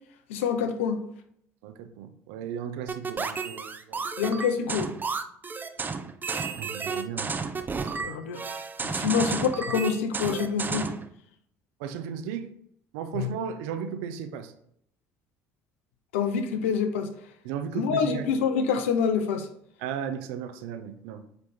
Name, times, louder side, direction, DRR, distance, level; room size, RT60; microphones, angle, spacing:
voice 1, 0.3-1.0 4.2-5.0 8.0-8.5 8.8-10.9 13.1-13.3 16.1-17.1 17.7-19.5, left 6 dB, 85° left, 0.7 m, -26 dB
voice 2, 1.6-4.0 6.6-7.3 7.8-8.1 9.1-9.2 11.8-12.5 12.9-14.5 17.4-18.3 19.8-21.2, right 8 dB, 75° right, 0.6 m, -35 dB
sound 1, 2.9-11.1, right 4 dB, 30° right, 0.6 m, -32 dB
7.9 x 3.4 x 4.2 m
hypercardioid pair, 65°, 7 cm